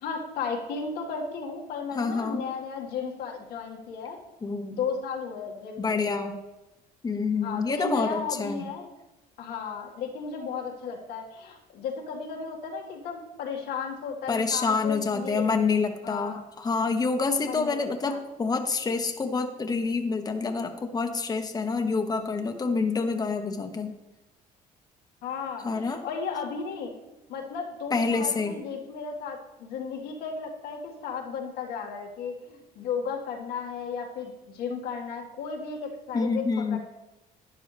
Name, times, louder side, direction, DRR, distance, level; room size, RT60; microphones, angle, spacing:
voice 1, 0.0-4.2 4.7-6.3 7.4-8.9 9.4-15.5 16.0-16.4 17.4-18.2 25.2-26.9 27.3-36.4 36.7-36.8, left 5 dB, 90° left, 0 dB, 2.0 m, -34 dB
voice 2, 1.9-2.5 4.4-4.8 5.8-6.3 7.0-8.7 14.3-23.9 25.6-26.0 27.9-28.5 36.1-36.8, left 4 dB, 20° left, 5 dB, 1.0 m, -27 dB
12.0 x 9.8 x 3.4 m, 0.99 s
cardioid pair, 110°, 17 cm